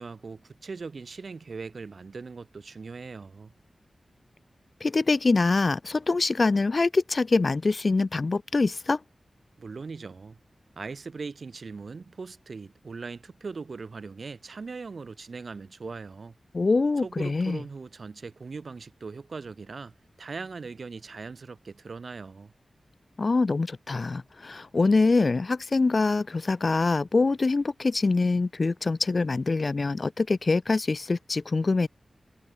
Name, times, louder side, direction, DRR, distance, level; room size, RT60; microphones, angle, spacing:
voice 1, 0.0-3.5 9.6-10.4 10.8-16.3 17.0-19.9 20.2-22.5, right 4 dB, 55° right, 2.6 m, -40 dB
voice 2, 4.8-9.0 16.5-17.6 23.2-31.9, left 3 dB, 40° left, 0.4 m, -24 dB
wide cardioid pair, 120°, 0 cm